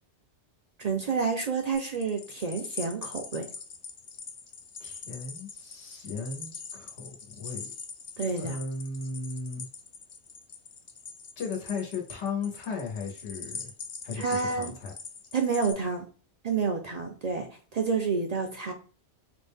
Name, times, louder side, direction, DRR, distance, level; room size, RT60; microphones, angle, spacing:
voice 1, 0.8-3.5 8.2-8.6 14.2-14.7 15.3-16.0 16.4-17.5 17.7-18.7, right 5 dB, 50° right, 3 dB, 0.5 m, -29 dB
sound 1, 1.7-15.7, left 5 dB, 65° left, 0.9 m, -43 dB
voice 2, 4.8-7.7 8.4-9.7 11.4-13.7 14.0-14.9, left 4 dB, 85° left, 1 dB, 1.3 m, -36 dB
3.9 x 2.1 x 3.4 m, 0.39 s
omnidirectional pair, 1.1 m